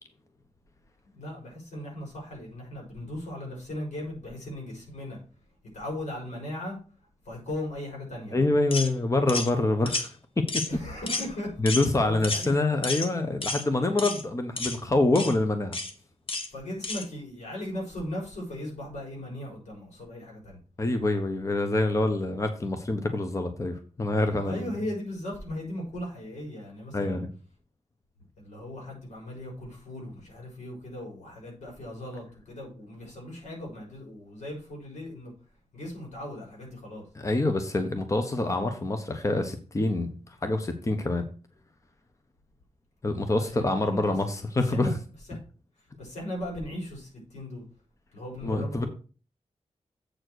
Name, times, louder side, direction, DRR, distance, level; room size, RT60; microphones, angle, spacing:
voice 1, 1.1-5.2 5.7-8.5 10.7-11.6 11.9-12.5 13.7-13.8 16.5-20.6 24.4-27.2 28.4-35.3 35.7-37.0 43.2-44.2 44.7-44.9 45.3-45.4 45.8-47.6 48.1-48.9, left 1 dB, 90° left, 4.7 m, -38 dB
voice 2, 8.3-10.1 10.4-10.6 11.6-15.8 20.8-24.7 26.9-27.3 37.2-40.1 40.4-41.3 43.0-44.9 48.4-48.8, left 2 dB, 25° left, 1.0 m, -26 dB
sound 1, 8.7-8.9 9.3-9.5 9.9-10.1 10.5-10.8 11.1-11.3 11.7-11.9 12.2-12.5 12.8-13.1 13.4-13.6 14.0-14.2 14.6-14.8 15.1-15.3 15.7-15.9 16.3-16.5 16.8-17.0, left 3 dB, 50° left, 1.3 m, -31 dB
7.9 x 4.4 x 6.3 m
wide cardioid pair, 100°, 12 cm